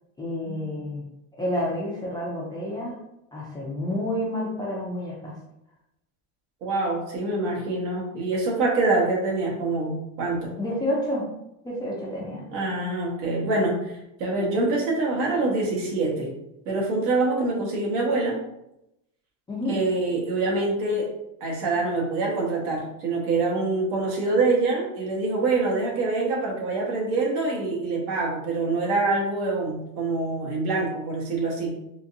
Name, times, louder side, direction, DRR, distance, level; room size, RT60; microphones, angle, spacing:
voice 1, 0.2-1.0 1.4-3.0 3.3-5.3 10.6-11.2 11.6-12.4 19.5-19.8, left 1 dB, 10° left, -6 dB, 0.4 m, -29 dB
voice 2, 6.6-10.6 12.5-13.9 14.2-16.3 16.6-18.4 19.7-21.1 21.4-31.7, right 3 dB, 75° right, -2 dB, 1.4 m, -25 dB
3.8 x 2.5 x 2.6 m, 0.85 s
supercardioid pair, 140°, 46 cm